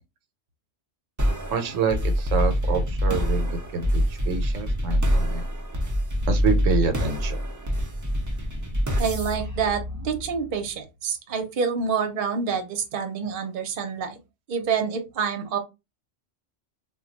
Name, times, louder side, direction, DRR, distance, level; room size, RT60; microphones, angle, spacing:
sound 1, 1.2-10.6, equal, 30° right, 0.3 m, -25 dB
voice 1, 1.5-5.4 6.3-7.5, right 5 dB, 85° right, 7 dB, 1.0 m, -27 dB
voice 2, 9.0-14.2 14.5-15.6, right 6 dB, 50° right, 5 dB, 0.8 m, -27 dB
2.2 x 2.2 x 3.8 m, 0.24 s
omnidirectional pair, 1.3 m